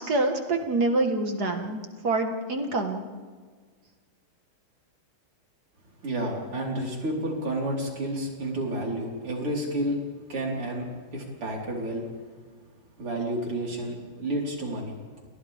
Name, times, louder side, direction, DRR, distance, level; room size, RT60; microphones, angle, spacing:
voice 1, 0.0-3.0, right 2 dB, 50° right, 4 dB, 2.2 m, -26 dB
voice 2, 6.0-10.0 10.3-10.9 11.1-12.1 13.0-15.0, right 1 dB, 85° right, -2 dB, 5.5 m, -30 dB
29.5 x 29.0 x 3.6 m, 1.5 s
omnidirectional pair, 2.4 m